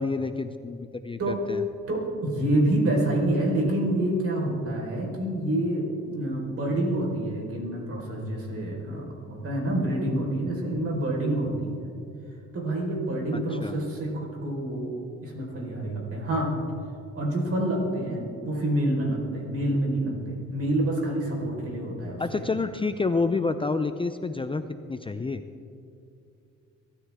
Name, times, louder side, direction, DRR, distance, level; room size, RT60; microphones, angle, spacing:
voice 1, 0.0-1.6 13.3-13.7 22.2-24.6 24.9-25.4, left 3 dB, 15° left, 10 dB, 0.5 m, -28 dB
voice 2, 1.9-11.9 12.5-16.5 17.1-22.5, right 1 dB, 50° right, -1 dB, 4.7 m, -27 dB
23.0 x 13.0 x 3.7 m, 2.5 s
cardioid pair, 90°, 30 cm